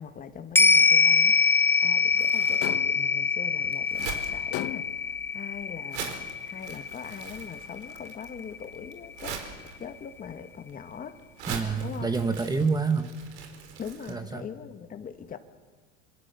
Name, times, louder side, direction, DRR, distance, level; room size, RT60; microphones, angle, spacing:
voice 1, 0.0-1.4 1.8-6.1 6.4-9.4 9.8-11.2 11.8-12.1 13.8-15.4, left 7 dB, 25° left, 1.8 m, -41 dB
sound 1, 0.6-9.1 9.5-9.6, left 5 dB, 5° left, 1.0 m, -24 dB
Crumpling crinkling, 1.9-14.1, right 6 dB, 85° right, 4.5 m, -42 dB
sound 2, 2.6-3.1 4.5-5.1, left 16 dB, 45° left, 0.9 m, -35 dB
voice 2, 11.5-13.1 14.1-14.5, right 4 dB, 10° right, 1.4 m, -27 dB
27.0 x 26.5 x 7.0 m
supercardioid pair, 125°, 33 cm